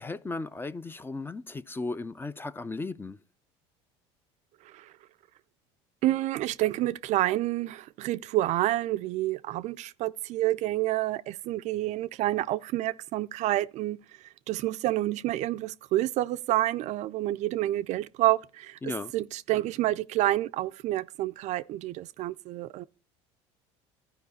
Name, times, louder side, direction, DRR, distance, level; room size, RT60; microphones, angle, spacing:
voice 1, 0.0-3.2 18.8-19.1, left 3 dB, 15° left, 0.4 m, -36 dB
voice 2, 6.0-14.0 14.5-22.8, right 15 dB, 55° right, 0.4 m, -28 dB
12.5 x 4.9 x 4.0 m
supercardioid pair, 90°, 14 cm